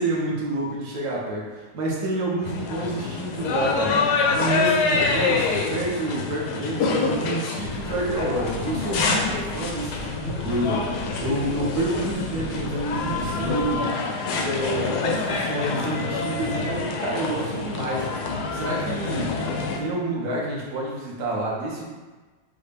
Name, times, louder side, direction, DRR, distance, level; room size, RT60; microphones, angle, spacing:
voice 1, 0.0-14.0 14.4-18.1 18.5-21.8, right 1 dB, 55° right, -4 dB, 1.3 m, -28 dB
sound 1, 2.4-19.8, left 4 dB, 75° left, 0.9 m, -26 dB
sound 2, 7.6-13.8, right 3 dB, 90° right, 1.6 m, -40 dB
5.5 x 2.3 x 3.4 m, 1.3 s
omnidirectional pair, 2.1 m